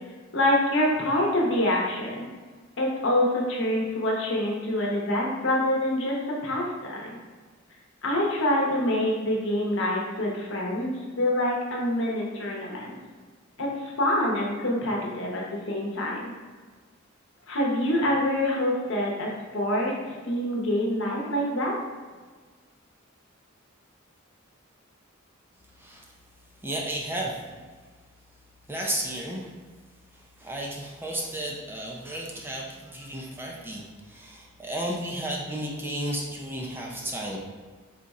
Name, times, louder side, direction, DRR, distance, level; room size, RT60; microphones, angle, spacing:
voice 1, 0.3-2.3 2.8-6.2 6.4-7.2 8.0-12.9 13.6-13.7 14.0-16.2 17.5-19.9 20.2-21.7, left 1 dB, 65° left, -2 dB, 0.9 m, -26 dB
voice 2, 25.8-26.1 26.6-27.6 28.7-29.5 30.1-37.4, right 1 dB, 10° right, -2 dB, 0.4 m, -33 dB
3.8 x 2.4 x 4.1 m, 1.4 s
head